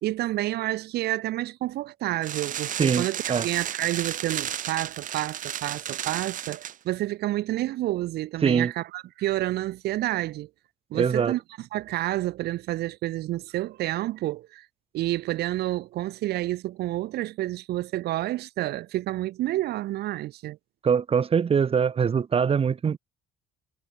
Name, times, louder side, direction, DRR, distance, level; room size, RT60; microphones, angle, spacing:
voice 1, 0.0-10.5 10.9-14.7 14.9-20.6, right 15 dB, 75° right, 1.6 m, -29 dB
sound 1, 2.2-6.8, right 10 dB, 50° right, 1.3 m, -33 dB
voice 2, 2.8-3.4 8.4-8.7 10.9-11.3 20.8-23.0, right 6 dB, 35° right, 1.6 m, -23 dB
cardioid pair, 110°, 17 cm